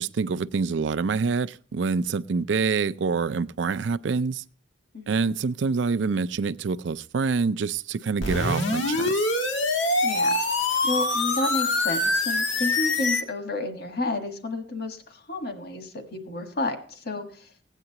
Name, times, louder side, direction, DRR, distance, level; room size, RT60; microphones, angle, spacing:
voice 1, 0.0-4.4 5.1-9.3, right 5 dB, 75° right, 0.4 m, -26 dB
voice 2, 4.9-5.3 10.0-10.4 10.8-17.5, left 2 dB, 60° left, 1.5 m, -31 dB
sound 1, 8.2-13.2, left 2 dB, 90° left, 1.7 m, -24 dB
16.0 x 9.1 x 2.9 m
head